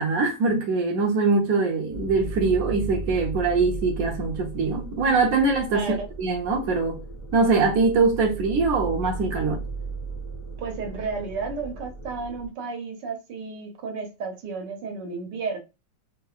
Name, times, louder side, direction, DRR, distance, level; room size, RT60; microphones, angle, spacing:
voice 1, 0.0-7.0 7.3-9.6, right 4 dB, 60° right, 1.1 m, -23 dB
sound 1, 1.9-12.5, right 3 dB, 20° left, 0.5 m, -36 dB
voice 2, 5.7-6.0 10.6-15.6, right 4 dB, 80° right, 1.4 m, -32 dB
4.6 x 2.1 x 2.3 m
omnidirectional pair, 1.9 m